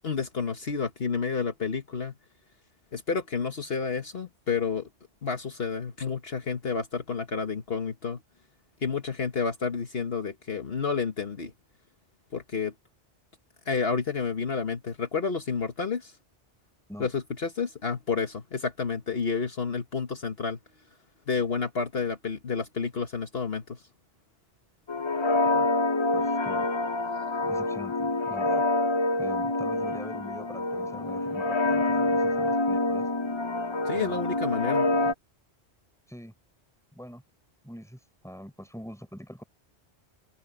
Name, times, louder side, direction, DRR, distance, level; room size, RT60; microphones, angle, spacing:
voice 1, 0.0-2.1 2.9-4.9 5.2-8.2 8.8-11.5 12.3-12.7 13.6-16.2 17.0-20.6 21.3-23.8 33.8-34.9, left 5 dB, 60° left, 1.7 m, -30 dB
sound 1, 24.9-35.1, left 2 dB, 30° left, 0.6 m, -26 dB
voice 2, 26.1-26.7 27.4-28.7 29.2-33.1 33.9-34.4 36.1-36.3 36.9-37.2 37.6-38.0 38.2-39.4, equal, 5° left, 5.4 m, -44 dB
omnidirectional pair, 1.1 m